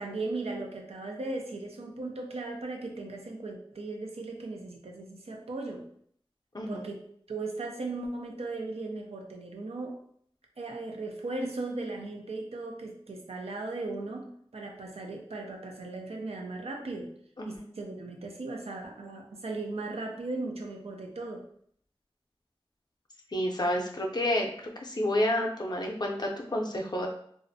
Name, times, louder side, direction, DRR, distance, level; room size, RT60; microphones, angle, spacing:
voice 1, 0.0-5.9 6.7-6.9 7.3-10.0 10.6-17.1 17.5-21.4, right 2 dB, 85° right, 1 dB, 0.4 m, -37 dB
voice 2, 23.3-24.5 24.8-27.1, left 1 dB, 45° left, 0 dB, 0.5 m, -29 dB
2.4 x 2.0 x 2.6 m, 0.63 s
wide cardioid pair, 50°, 10 cm